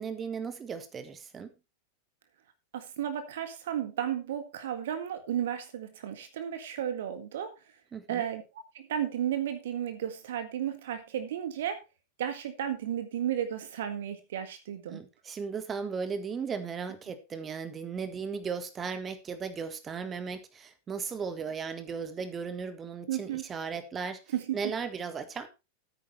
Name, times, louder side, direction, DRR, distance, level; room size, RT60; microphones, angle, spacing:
voice 1, 0.0-1.5 7.9-8.2 14.9-24.2 24.5-25.5, right 5 dB, 20° right, 11 dB, 1.7 m, -36 dB
voice 2, 2.7-7.5 8.1-8.4 8.7-11.8 12.2-15.0 23.1-23.5 24.3-24.6, right 10 dB, 60° right, 9 dB, 1.8 m, -33 dB
14.5 x 8.9 x 3.2 m, 0.26 s
figure-of-eight pair, 90°, 0 cm